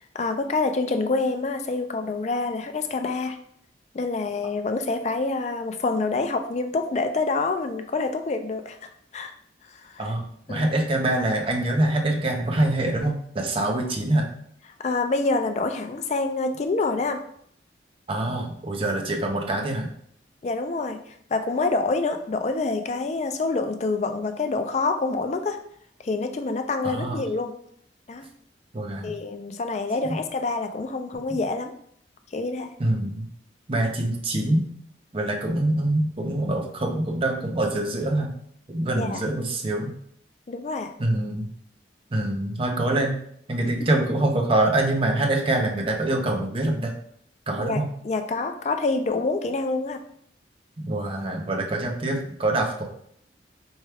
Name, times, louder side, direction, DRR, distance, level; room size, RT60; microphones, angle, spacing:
voice 1, 0.1-3.4 3.9-9.3 9.7-10.1 10.5-10.7 14.8-17.2 20.4-25.6 26.0-27.5 28.1-28.3 29.0-31.7 32.3-32.7 39.0-39.2 40.5-40.9 43.8-43.9 47.6-50.0, left 3 dB, 40° left, 7 dB, 0.3 m, -27 dB
voice 2, 10.0-14.3 18.1-19.9 26.8-27.2 28.7-29.2 30.1-30.2 32.8-33.3 33.7-34.7 35.1-38.3 38.7-39.9 41.0-41.5 42.1-43.1 43.5-46.9 47.5-47.9 50.8-52.8, right 1 dB, 30° right, 2 dB, 0.5 m, -25 dB
4.3 x 2.3 x 3.3 m, 0.66 s
head